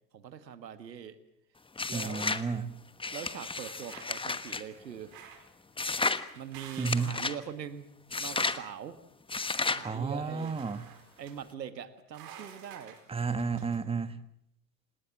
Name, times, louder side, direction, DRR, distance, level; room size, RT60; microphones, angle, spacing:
voice 1, 0.1-1.2 1.9-2.3 3.1-5.2 6.3-9.0 9.7-10.6 11.2-13.0, right 8 dB, 85° right, 12 dB, 1.8 m, -42 dB
sound 1, 1.8-2.5 3.0-4.6 5.8-6.2 6.8-7.4 8.1-8.6 9.3-9.9, left 3 dB, 10° left, 1.3 m, -32 dB
voice 2, 1.9-2.8 6.8-7.1 9.8-10.9 13.1-14.2, right 5 dB, 10° right, 11 dB, 1.6 m, -32 dB
sound 2, 3.3-4.5 5.1-5.6 6.0-7.2 10.3-11.4 12.1-13.8, right 8 dB, 45° right, 5.1 m, -52 dB
28.0 x 19.0 x 7.3 m, 0.72 s
hypercardioid pair, 85°, 49 cm